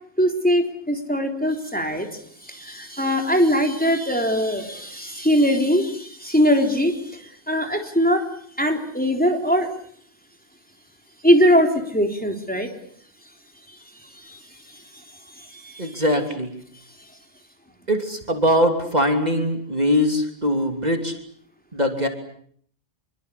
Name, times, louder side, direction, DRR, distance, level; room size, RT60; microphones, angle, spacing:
voice 1, 0.2-2.1 2.4-8.2 8.6-9.7 11.2-12.7 14.1-14.4 14.7-16.0, equal, 10° left, 3 dB, 3.8 m, -21 dB
voice 2, 15.8-16.5 17.9-21.1 21.7-22.1, equal, 40° right, 5 dB, 3.2 m, -21 dB
26.5 x 23.5 x 8.5 m, 0.63 s
omnidirectional pair, 1.1 m